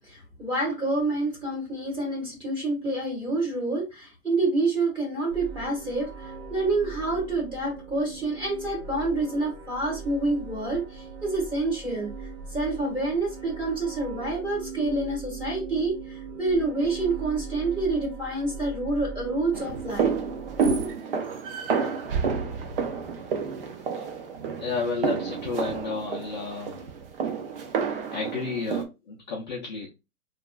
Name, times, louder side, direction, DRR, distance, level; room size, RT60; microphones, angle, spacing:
voice 1, 0.1-12.1 12.5-20.1 20.6-20.9, right 2 dB, 10° right, -4 dB, 1.1 m, -28 dB
sound 1, 5.3-20.9, right 4 dB, 80° right, 1.0 m, -40 dB
sound 2, 19.5-28.8, right 6 dB, 40° right, 0.4 m, -30 dB
voice 2, 24.6-26.8 28.1-29.9, left 4 dB, 30° left, -1 dB, 0.4 m, -32 dB
2.8 x 2.4 x 2.3 m, 0.26 s
hypercardioid pair, 140°, 45 cm